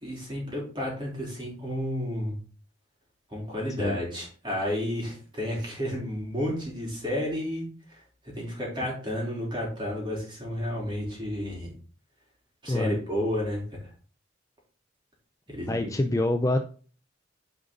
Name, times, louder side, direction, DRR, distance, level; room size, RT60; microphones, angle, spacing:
voice 1, 0.0-2.3 3.3-11.7 12.6-13.6 15.5-15.9, left 1 dB, 25° right, -3 dB, 3.4 m, -32 dB
voice 2, 12.7-13.0 15.7-16.6, left 1 dB, 15° left, 6 dB, 0.4 m, -26 dB
9.6 x 5.1 x 3.8 m, 0.41 s
head